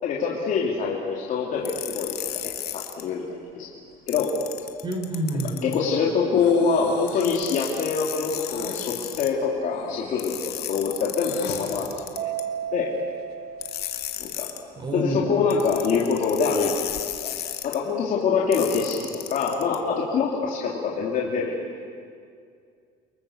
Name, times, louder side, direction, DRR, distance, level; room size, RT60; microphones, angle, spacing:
voice 1, 0.0-3.2 3.5-3.7 4.1-4.3 5.6-10.4 10.7-11.9 12.7-12.9 14.2-14.5 14.9-16.9 17.2-21.6, left 5 dB, 50° left, -3 dB, 3.1 m, -25 dB
sound 1, 1.6-3.0 4.1-5.8 7.1-9.3 10.2-12.4 13.6-14.6 15.5-17.8 18.5-19.8, left 13 dB, 65° left, 2.0 m, -34 dB
voice 2, 4.8-5.6 14.8-15.3, right 1 dB, 25° right, 5 dB, 4.2 m, -27 dB
Breathing, 6.4-7.4 8.2-8.9 9.7-11.6, left 7 dB, 85° left, 7.7 m, -40 dB
Mallet percussion, 12.2-14.6, right 9 dB, 55° right, 2.3 m, -34 dB
29.5 x 24.5 x 7.3 m, 2.3 s
cardioid pair, 140°, 18 cm